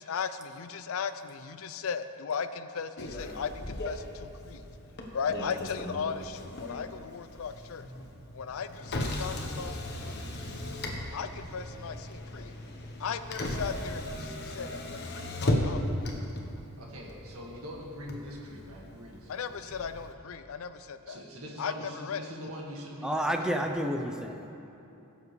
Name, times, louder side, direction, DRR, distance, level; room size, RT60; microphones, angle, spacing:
voice 1, 0.0-4.6 5.1-7.9 8.3-10.5 11.1-12.5 13.0-15.9 19.3-21.2 21.6-22.2, left 6 dB, 65° left, 11 dB, 0.4 m, -37 dB
Motor vehicle (road), 3.0-20.1, left 1 dB, 50° left, 1.1 m, -36 dB
voice 2, 16.8-19.7 21.0-23.4, equal, 75° right, -2 dB, 1.7 m, -43 dB
voice 3, 23.0-24.5, equal, 5° right, 4 dB, 0.5 m, -30 dB
16.5 x 7.4 x 3.2 m, 3.0 s
head